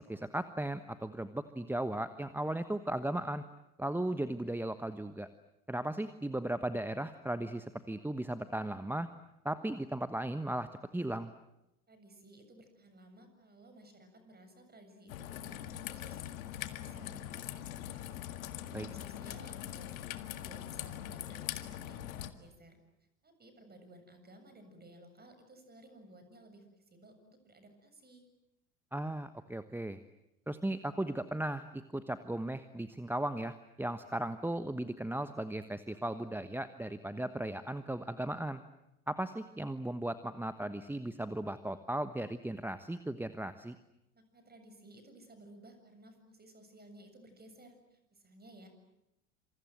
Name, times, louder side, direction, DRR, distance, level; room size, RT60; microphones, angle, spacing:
voice 1, 0.0-3.4 3.8-5.3 5.7-9.1 9.4-10.7 10.9-11.3 18.7-18.9 28.9-30.0 30.5-38.6 39.1-43.8, right 1 dB, 5° right, 11 dB, 1.2 m, -36 dB
voice 2, 11.9-18.2 18.6-22.8 23.2-26.6 26.9-28.2 44.1-48.7, right 1 dB, 20° right, 7 dB, 7.3 m, -57 dB
Raindrop / Trickle dribble, 15.1-22.3, left 12 dB, 70° left, 1.9 m, -42 dB
27.5 x 27.0 x 7.8 m, 0.89 s
figure-of-eight pair, 75°, 44 cm